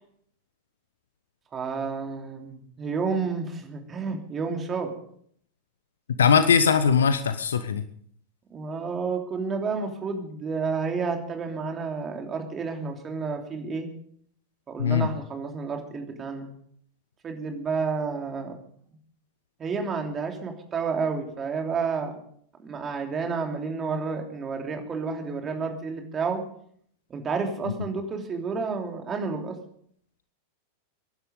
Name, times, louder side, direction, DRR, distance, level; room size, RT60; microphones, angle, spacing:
voice 1, 1.5-4.9 8.5-13.9 14.7-16.5 17.2-18.6 19.6-22.2 22.6-26.4 27.1-29.6, right 5 dB, 25° right, 3 dB, 3.2 m, -30 dB
voice 2, 6.2-7.8 14.8-15.1, left 6 dB, 65° left, 12 dB, 0.9 m, -20 dB
23.0 x 11.5 x 5.2 m, 0.64 s
figure-of-eight pair, 90°, 0 cm